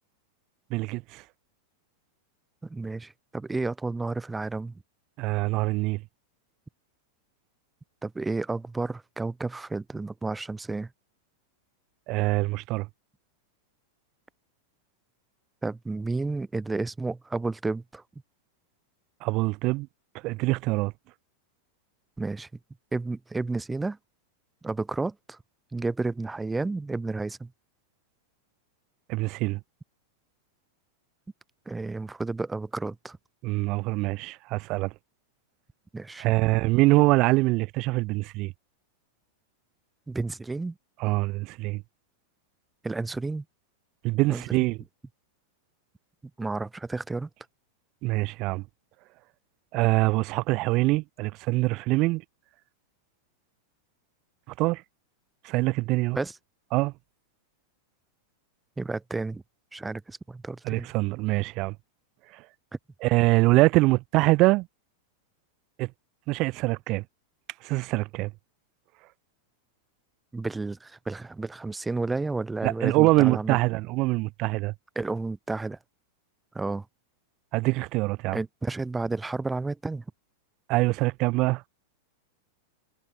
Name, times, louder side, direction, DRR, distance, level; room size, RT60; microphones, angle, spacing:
voice 1, 0.7-1.2 5.2-6.0 12.1-12.9 19.2-19.9 20.2-20.9 29.1-29.6 33.4-34.9 36.2-38.5 41.0-41.8 44.0-44.8 48.0-48.6 49.7-52.2 54.6-54.8 55.4-56.2 56.7-56.9 60.6-61.8 62.3-62.4 63.0-64.7 65.8-65.9 66.3-67.0 67.6-68.3 72.6-74.7 77.5-78.4 80.7-81.6, right 22 dB, 40° right, 2.0 m, -24 dB
voice 2, 2.6-4.7 8.0-10.9 15.6-18.0 22.2-22.5 22.9-24.0 24.6-25.4 25.7-27.5 31.7-33.2 35.9-36.3 40.1-40.7 42.8-43.4 44.3-44.4 46.4-47.3 56.1-56.4 58.8-59.4 59.7-60.9 70.3-73.6 75.0-75.8 76.5-76.9 78.3-80.0, right 3 dB, 10° right, 0.7 m, -31 dB
figure-of-eight pair, 95°, 0 cm